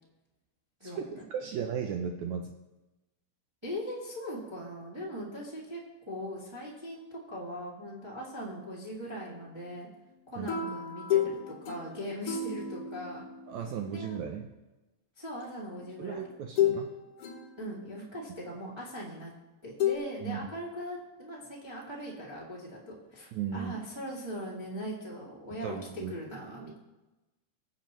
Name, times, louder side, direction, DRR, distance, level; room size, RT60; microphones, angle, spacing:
voice 1, 0.8-2.5 10.4-10.5 13.5-14.5 16.0-16.9 20.2-20.4 23.3-23.7 25.6-26.2, right 7 dB, 80° right, 4 dB, 1.7 m, -36 dB
voice 2, 3.6-5.8 6.0-9.9 10.3-13.3 13.9-14.2 15.2-16.2 17.6-19.3 19.6-26.8, equal, 10° right, -4 dB, 1.2 m, -40 dB
sound 1, 10.5-14.1 15.4-15.6 16.6-16.9 17.2-18.0 19.8-19.9, left 9 dB, 60° left, 1.6 m, -31 dB
20.5 x 7.2 x 3.1 m, 1.1 s
omnidirectional pair, 4.0 m